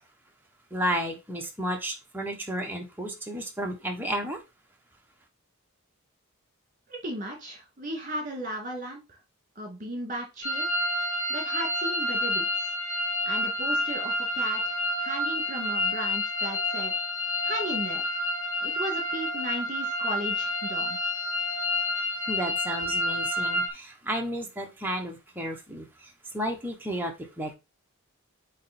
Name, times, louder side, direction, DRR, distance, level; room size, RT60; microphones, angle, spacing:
voice 1, 0.7-4.4 22.3-27.5, equal, 10° right, 1 dB, 1.3 m, -32 dB
voice 2, 6.9-9.2 9.6-10.7 11.0-12.7 13.3-16.9 17.4-18.2 18.6-21.0, right 1 dB, 35° right, 3 dB, 2.4 m, -36 dB
sound 1, 10.4-23.7, left 1 dB, 85° left, 2.3 m, -29 dB
8.6 x 3.3 x 4.3 m, 0.25 s
head